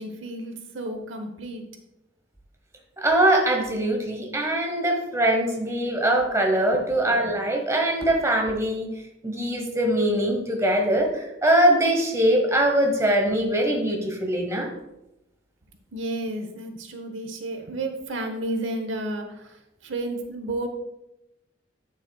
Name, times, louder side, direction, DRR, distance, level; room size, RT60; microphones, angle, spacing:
voice 1, 0.0-1.6 6.7-6.8 15.9-20.7, right 1 dB, 70° right, 6 dB, 0.9 m, -32 dB
voice 2, 3.0-8.9 9.2-14.7, right 1 dB, 15° right, 3 dB, 1.0 m, -22 dB
8.9 x 7.3 x 2.3 m, 0.89 s
head